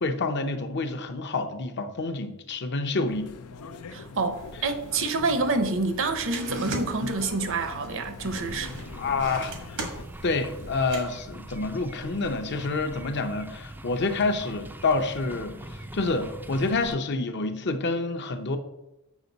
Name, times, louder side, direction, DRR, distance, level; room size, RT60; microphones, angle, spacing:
voice 1, 0.0-3.3 6.6-6.8 9.0-9.5 10.2-18.6, left 3 dB, 50° left, 0.7 m, -28 dB
sound 1, 3.1-10.1, left 4 dB, 85° left, 0.5 m, -43 dB
voice 2, 3.9-8.7, right 3 dB, 65° right, 0.8 m, -27 dB
sound 2, 4.3-11.0, right 3 dB, 85° right, 1.5 m, -41 dB
sound 3, 8.2-17.0, right 1 dB, 10° right, 0.4 m, -42 dB
8.2 x 5.2 x 4.0 m
head